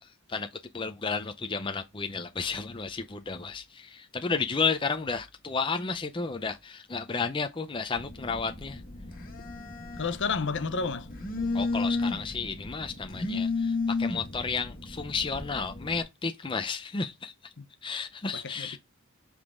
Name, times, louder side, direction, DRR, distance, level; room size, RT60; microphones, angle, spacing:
voice 1, 0.0-0.5 0.7-8.8 11.5-17.5 17.8-18.8, left 5 dB, 25° left, 0.6 m, -32 dB
Telephone, 7.9-16.0, left 3 dB, 40° left, 2.0 m, -33 dB
voice 2, 10.0-11.1 17.6-17.7 18.3-18.8, left 4 dB, 60° left, 0.8 m, -31 dB
7.3 x 3.9 x 3.6 m
head